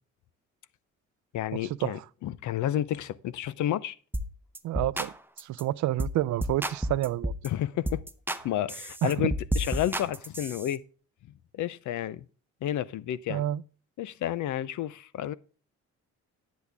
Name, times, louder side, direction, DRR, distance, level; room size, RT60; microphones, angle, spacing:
voice 1, 1.3-4.0 7.4-8.0 8.4-10.8 11.5-12.2 12.6-13.4 14.0-15.3, left 12 dB, 75° left, 0.7 m, -31 dB
sound 1, 4.1-4.3 4.5-5.1 5.4-5.6 6.0-6.2 6.4-7.5 7.9-8.4 8.7-10.7, equal, 5° right, 0.8 m, -31 dB
voice 2, 4.6-5.1 5.4-7.3 9.0-9.3 13.3-13.6, right 14 dB, 70° right, 0.5 m, -29 dB
10.5 x 8.4 x 3.5 m
cardioid pair, 105°, 30 cm